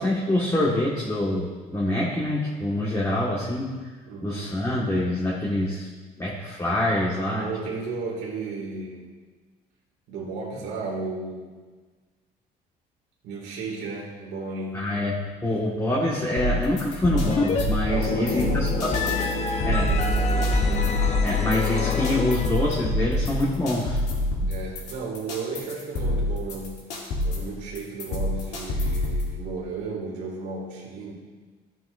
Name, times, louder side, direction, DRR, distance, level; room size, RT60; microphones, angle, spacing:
voice 1, 0.0-3.7 4.2-5.9 6.2-7.4 14.7-19.0 19.6-19.9 21.2-24.0, left 1 dB, 15° left, -5 dB, 1.6 m, -25 dB
voice 2, 4.0-4.5 7.3-9.1 10.1-11.6 13.2-14.8 17.9-21.0 24.5-26.9 27.2-31.1, right 4 dB, 85° right, -4 dB, 2.3 m, -34 dB
sound 1, 16.4-29.3, left 1 dB, 85° left, 2.7 m, -27 dB
sound 2, 17.2-17.6 17.9-22.8, left 4 dB, 40° left, 1.0 m, -25 dB
14.0 x 7.6 x 2.6 m, 1.4 s
cardioid pair, 110°, 17 cm